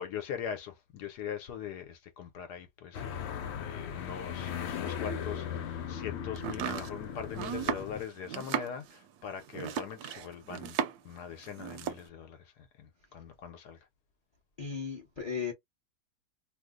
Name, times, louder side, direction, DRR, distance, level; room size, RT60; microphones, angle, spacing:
voice 1, 0.0-3.3 3.6-10.8 11.0-13.8, left 8 dB, 70° left, 1.2 m, -41 dB
sound 1, 2.9-8.0, left 8 dB, 85° left, 0.6 m, -38 dB
Domestic sounds home sounds, 6.4-11.2 11.4-12.1, right 9 dB, 70° right, 1.0 m, -36 dB
voice 2, 14.6-15.5, left 6 dB, 35° left, 0.7 m, -36 dB
3.0 x 2.0 x 3.6 m
omnidirectional pair, 1.9 m